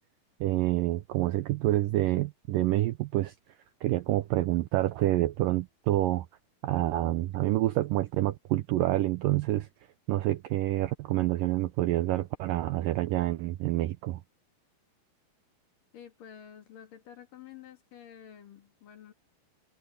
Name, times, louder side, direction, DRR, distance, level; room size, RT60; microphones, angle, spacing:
voice 1, 0.4-3.3 3.8-6.3 6.6-9.7 10.1-14.2, right 16 dB, 80° right, 2.0 m, -27 dB
voice 2, 15.9-19.1, left 9 dB, 60° left, 3.9 m, -50 dB
omnidirectional pair, 4.6 m